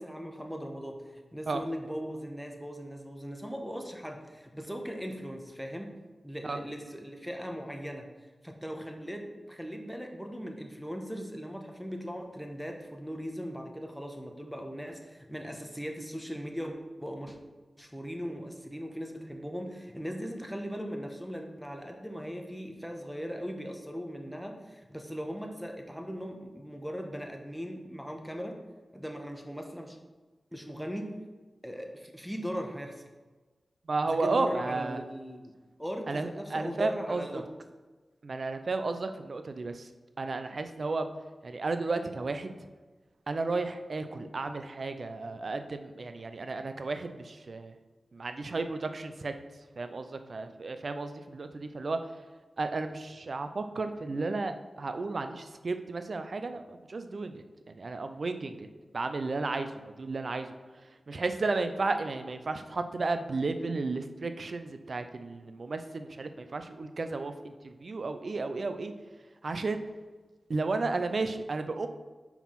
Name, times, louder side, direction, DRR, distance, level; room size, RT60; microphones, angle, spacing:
voice 1, 0.0-5.9 6.2-8.1 8.4-17.4 17.8-28.6 28.9-30.0 30.5-31.1 31.6-33.1 34.1-35.5 35.8-37.5, equal, ahead, 3 dB, 1.1 m, -39 dB
voice 2, 33.9-35.0 36.1-37.4 38.2-39.9 40.2-41.1 41.4-42.5 43.3-47.8 48.1-49.3 49.8-52.0 52.6-58.7 58.9-60.6 61.1-68.9 69.4-69.8 70.5-71.9, right 3 dB, 70° right, 8 dB, 0.5 m, -33 dB
5.5 x 4.7 x 5.8 m, 1.3 s
cardioid pair, 40°, 0 cm